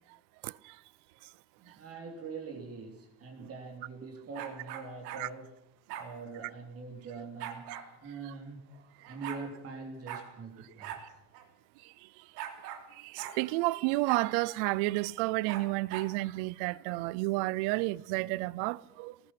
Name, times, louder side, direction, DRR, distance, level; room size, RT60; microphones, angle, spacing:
voice 1, 0.4-0.8 3.4-3.5 5.2-5.3 13.0-19.1, right 21 dB, 60° right, 0.7 m, -31 dB
voice 2, 1.6-5.5 5.9-11.2, right 4 dB, 30° right, 3.2 m, -44 dB
sound 1, 4.3-5.2 5.9-6.1 7.4-7.9 8.7-8.8 9.0-9.4 10.1-10.3 10.8-11.0 11.3-11.4 12.4-12.8 13.2-13.4 14.0-14.3 15.5-16.1, right 10 dB, 90° right, 3.2 m, -41 dB
23.5 x 19.0 x 5.9 m
cardioid pair, 155°, 47 cm